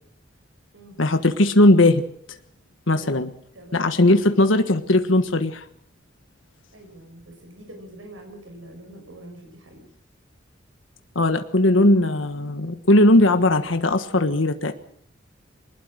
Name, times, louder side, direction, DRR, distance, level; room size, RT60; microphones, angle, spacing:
voice 1, 1.0-2.0 2.9-3.3 3.7-5.6 11.1-14.7, left 1 dB, 90° left, 8 dB, 1.4 m, -18 dB
voice 2, 2.9-3.2 3.5-4.0 6.7-9.8, right 1 dB, 85° right, 4 dB, 6.4 m, -44 dB
23.0 x 20.5 x 6.5 m, 0.65 s
head